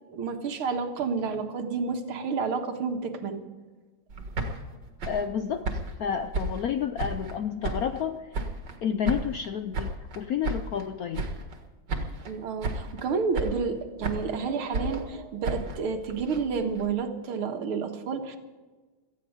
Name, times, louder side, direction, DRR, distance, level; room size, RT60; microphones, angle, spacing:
voice 1, 0.1-3.4 12.3-18.4, right 5 dB, 85° right, 5 dB, 2.3 m, -30 dB
sound 1, 4.1-7.4 7.6-8.8 9.1-10.9 11.1-11.6 11.9-12.4 12.6-13.1 13.3-14.4 14.7-16.9, right 2 dB, 55° right, 2.2 m, -33 dB
voice 2, 5.1-8.3 8.8-11.3, left 8 dB, 75° left, 9 dB, 0.8 m, -30 dB
17.5 x 14.5 x 5.1 m, 1.3 s
omnidirectional pair, 2.3 m